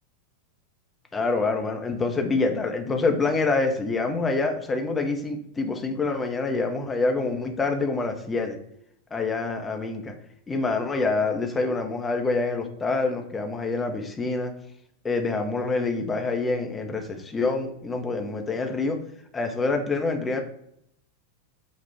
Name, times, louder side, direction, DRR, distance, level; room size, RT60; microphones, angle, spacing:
voice 1, 1.1-8.6 9.1-10.1 10.5-14.5 15.0-19.0 19.3-20.4, left 3 dB, 15° left, 4 dB, 0.7 m, -26 dB
6.1 x 2.4 x 3.4 m, 0.73 s
figure-of-eight pair, 90°, 0 cm